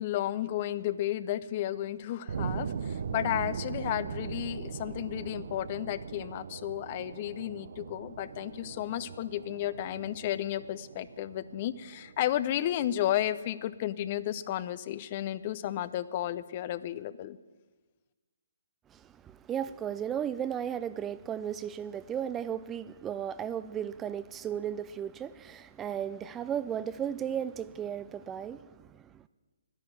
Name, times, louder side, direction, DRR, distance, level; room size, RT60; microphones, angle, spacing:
voice 1, 0.0-17.4, left 12 dB, 40° left, 16 dB, 0.6 m, -33 dB
sound 1, 2.3-13.0, right 6 dB, 60° right, 0.6 m, -40 dB
voice 2, 18.9-29.3, right 9 dB, 15° right, 14 dB, 0.4 m, -35 dB
11.5 x 10.5 x 9.0 m, 1.3 s
figure-of-eight pair, 140°, 0 cm